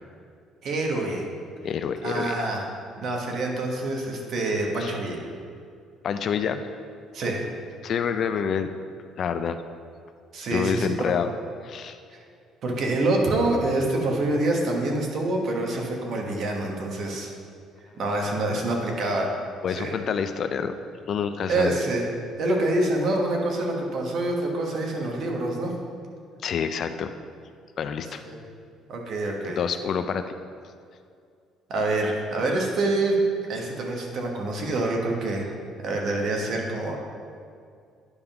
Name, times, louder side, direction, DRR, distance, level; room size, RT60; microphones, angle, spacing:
voice 1, 0.6-1.3 2.0-2.7 3.0-5.3 7.1-7.4 10.3-11.1 12.1-12.2 12.6-17.3 18.0-19.3 19.7-19.9 21.5-22.1 22.4-25.7 28.2-28.4 28.9-29.6 31.7-33.2 33.5-35.5 35.8-37.0, right 2 dB, 45° right, 1 dB, 1.1 m, -26 dB
voice 2, 1.6-2.4 4.8-4.9 6.0-6.6 7.8-8.7 9.2-9.6 10.5-11.3 11.6-12.0 19.6-20.7 21.1-21.8 26.4-27.1 27.8-28.2 29.6-30.2, left 7 dB, 40° left, 9 dB, 0.3 m, -27 dB
9.6 x 3.6 x 5.7 m, 2.3 s
cardioid pair, 165°, 0 cm